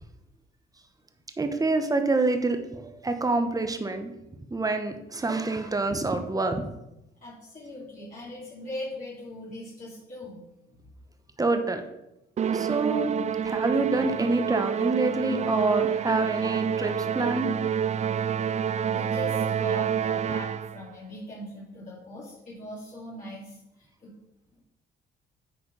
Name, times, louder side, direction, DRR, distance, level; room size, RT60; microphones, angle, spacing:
voice 1, 1.4-4.1 4.5-6.7 11.4-11.8 12.5-13.2 13.4-17.5, right 3 dB, 20° right, 7 dB, 1.1 m, -26 dB
voice 2, 7.2-10.4 18.9-24.1, left 1 dB, 40° left, -9 dB, 3.1 m, -40 dB
Musical instrument, 12.4-20.9, right 8 dB, 35° right, 0.4 m, -28 dB
8.6 x 4.7 x 5.6 m, 0.87 s
cardioid pair, 90°, 20 cm